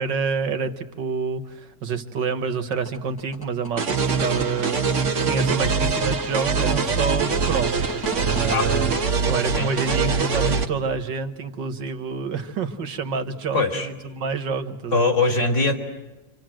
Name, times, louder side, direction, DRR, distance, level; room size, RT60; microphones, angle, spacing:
voice 1, 0.0-8.9 9.3-13.6 14.1-15.1, right 5 dB, 80° right, 8 dB, 2.3 m, -28 dB
sound 1, 2.7-8.6, left 1 dB, 10° left, 1.7 m, -38 dB
Future Bass Chord Progression, 3.8-10.7, right 5 dB, 45° right, 1.7 m, -23 dB
voice 2, 13.5-13.9 14.9-15.8, left 3 dB, 40° left, 3 dB, 3.4 m, -21 dB
29.0 x 26.5 x 7.8 m, 1.1 s
omnidirectional pair, 1.9 m